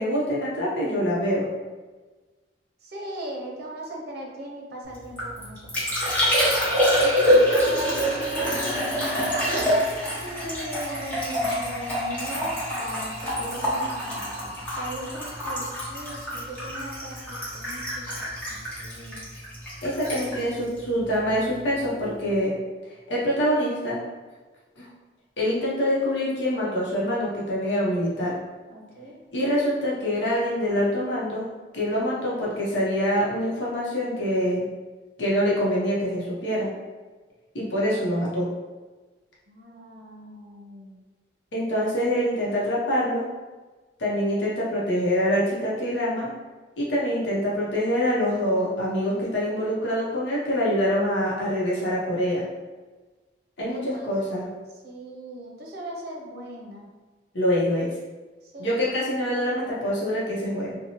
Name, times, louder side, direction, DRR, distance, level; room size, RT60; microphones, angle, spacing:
voice 1, 0.0-1.5 7.0-7.3 19.8-22.5 23.1-24.0 24.8-24.9 25.4-28.4 29.3-31.5 31.7-34.7 35.2-36.7 37.5-38.5 41.5-43.2 44.0-46.3 46.8-52.4 53.6-54.5 57.3-57.9 58.6-60.7, equal, 85° left, -5 dB, 0.7 m, -25 dB
voice 2, 2.8-6.8 7.2-8.7 9.3-9.9 10.2-19.3 28.7-29.2 39.5-41.0 53.7-54.2 54.8-56.9 58.4-58.9, right 1 dB, 60° right, -1 dB, 0.6 m, -38 dB
Liquid, 4.9-21.6 21.8-22.4, equal, 10° left, 0.9 m, -26 dB
2.7 x 2.1 x 2.9 m, 1.3 s
head